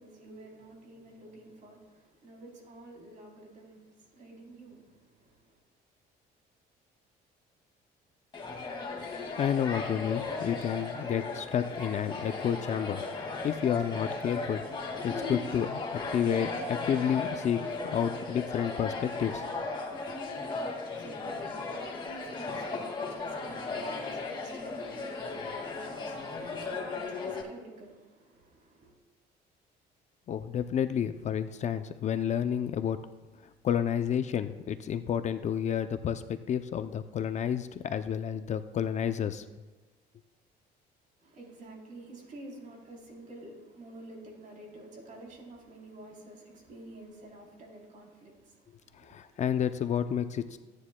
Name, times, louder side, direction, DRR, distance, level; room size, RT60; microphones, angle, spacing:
voice 1, 0.0-5.6 20.6-28.9 41.2-49.4, right 2 dB, 50° right, 3.4 m, -50 dB
sound 1, 8.3-27.4, left 3 dB, 30° left, 2.1 m, -36 dB
voice 2, 9.4-13.0 13.4-14.6 15.0-19.4 30.3-33.0 33.6-39.4 49.0-50.6, left 8 dB, 45° left, 0.5 m, -30 dB
16.0 x 9.7 x 2.2 m
cardioid pair, 110°, 17 cm